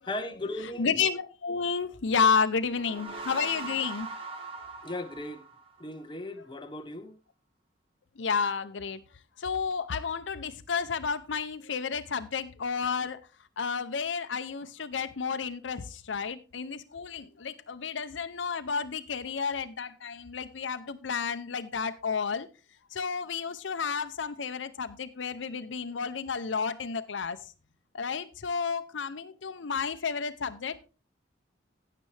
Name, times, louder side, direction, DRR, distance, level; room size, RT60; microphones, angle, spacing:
voice 1, 0.0-0.9 4.8-5.4 5.8-7.2, left 2 dB, 25° left, 1.0 m, -37 dB
voice 2, 0.8-4.1 8.2-9.0 9.4-13.2 13.6-22.5 22.9-27.4 27.9-30.9, left 5 dB, 90° left, 0.7 m, -31 dB
sound 1, 2.5-6.0, right 3 dB, 30° right, 1.5 m, -41 dB
16.0 x 6.7 x 3.3 m
head